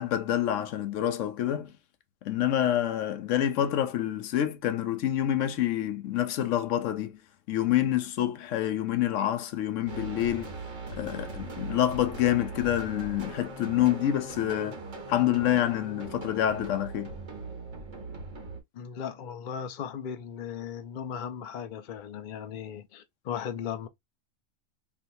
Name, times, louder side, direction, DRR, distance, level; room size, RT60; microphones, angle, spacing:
voice 1, 0.0-1.7 2.2-7.2 7.5-10.5 10.9-14.8 15.1-17.1, left 11 dB, 75° left, 0.9 m, -27 dB
sound 1, 9.9-18.6, right 3 dB, 70° right, 1.6 m, -40 dB
voice 2, 18.7-23.9, left 8 dB, 55° left, 0.5 m, -37 dB
3.4 x 2.9 x 2.6 m
omnidirectional pair, 1.3 m